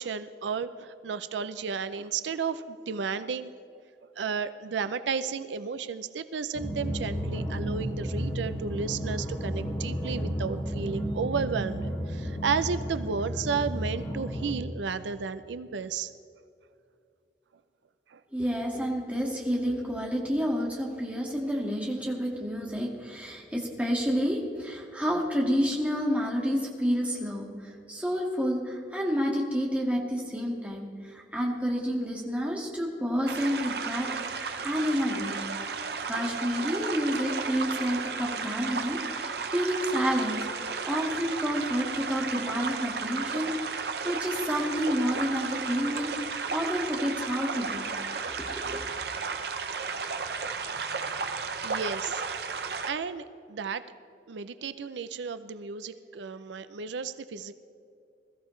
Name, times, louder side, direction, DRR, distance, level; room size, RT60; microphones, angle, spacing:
voice 1, 0.0-3.5 4.2-16.1 18.1-18.2 51.6-52.2 52.9-53.8 54.3-57.5, right 5 dB, 85° right, 12 dB, 0.5 m, -33 dB
sound 1, 6.5-14.5, equal, 20° left, 2.2 m, -32 dB
voice 2, 18.3-35.4 36.1-47.9 48.3-48.8, equal, 10° right, -2 dB, 1.9 m, -29 dB
sound 2, 33.3-52.9, right 5 dB, 65° right, 0.9 m, -34 dB
21.0 x 14.0 x 3.2 m, 2.7 s
head